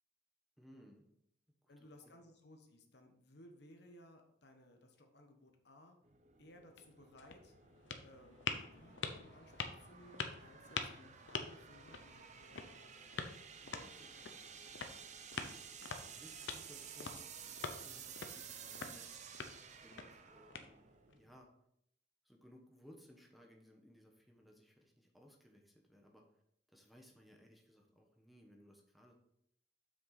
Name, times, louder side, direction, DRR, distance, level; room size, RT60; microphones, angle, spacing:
voice 1, 0.6-1.1 2.0-2.1 16.0-19.1 19.8-20.8 21.1-21.5 22.2-26.2 26.7-29.1, equal, ahead, 1 dB, 1.1 m, -61 dB
voice 2, 1.7-6.0 6.4-7.5 8.0-13.1 13.6-14.9, left 1 dB, 60° left, 4 dB, 1.2 m, -61 dB
sound 1, 6.0-21.5, right 7 dB, 40° right, 0.7 m, -54 dB
sound 2, 6.6-21.1, left 5 dB, 85° left, 0.8 m, -47 dB
7.8 x 6.1 x 4.1 m, 0.74 s
head